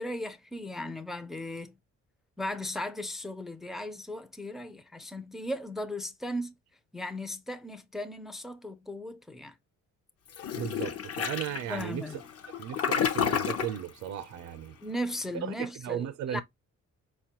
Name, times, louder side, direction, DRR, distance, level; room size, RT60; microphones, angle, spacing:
voice 1, 0.0-1.7 2.4-6.5 6.9-9.5 11.7-12.2 14.8-16.4, left 1 dB, ahead, 0.4 m, -37 dB
Toilet flush, 10.3-13.8, left 8 dB, 50° left, 0.6 m, -30 dB
voice 2, 10.5-12.1 12.6-14.8 15.4-16.4, right 10 dB, 70° right, 0.5 m, -36 dB
4.5 x 2.2 x 2.8 m
cardioid pair, 90°, 30 cm